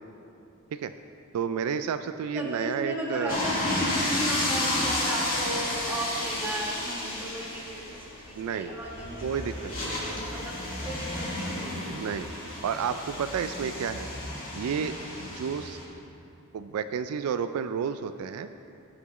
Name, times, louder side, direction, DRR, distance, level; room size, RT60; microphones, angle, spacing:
voice 1, 1.3-3.4 8.4-8.7 9.2-10.0 11.8-12.3 12.6-14.1 14.5-15.8 16.5-18.5, right 7 dB, 80° right, 10 dB, 0.3 m, -31 dB
voice 2, 2.3-9.2 9.7-10.6 10.8-11.8, equal, 10° right, -5 dB, 1.7 m, -35 dB
sound 1, 3.3-15.8, left 1 dB, 40° left, 2.1 m, -32 dB
17.5 x 5.9 x 3.0 m, 2.8 s
head